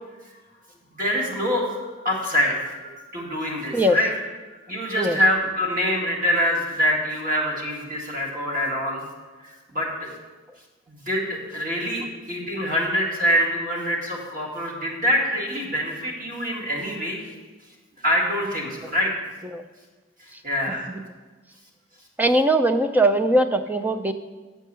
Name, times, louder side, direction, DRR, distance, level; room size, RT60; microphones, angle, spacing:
voice 1, 0.9-4.1 4.7-9.1 9.4-10.1 10.9-17.2 18.0-19.1 20.4-20.9, equal, 45° right, -2 dB, 2.0 m, -25 dB
voice 2, 22.2-24.1, right 1 dB, 10° right, 8 dB, 0.4 m, -20 dB
8.4 x 4.5 x 6.8 m, 1.3 s
head